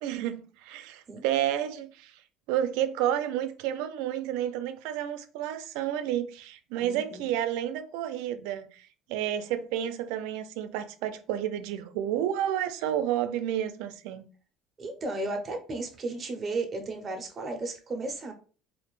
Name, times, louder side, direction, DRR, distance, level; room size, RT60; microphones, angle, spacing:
voice 1, 0.0-2.1 2.5-14.3, right 11 dB, 80° right, 0.3 m, -30 dB
voice 2, 6.8-7.2 14.8-18.3, right 2 dB, 25° right, 0.5 m, -34 dB
2.5 x 2.1 x 3.0 m
cardioid pair, 165°, 0 cm